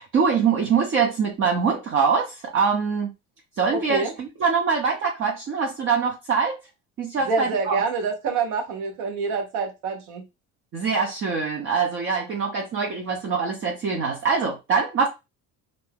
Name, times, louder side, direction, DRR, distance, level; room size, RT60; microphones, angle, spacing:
voice 1, 0.0-3.1 3.6-6.6 7.0-7.8 10.7-15.1, right 5 dB, 40° right, 0.7 m, -23 dB
voice 2, 3.7-4.1 7.3-10.2, right 4 dB, 90° right, 0.9 m, -26 dB
2.6 x 2.3 x 3.4 m
cardioid pair, 115°, 32 cm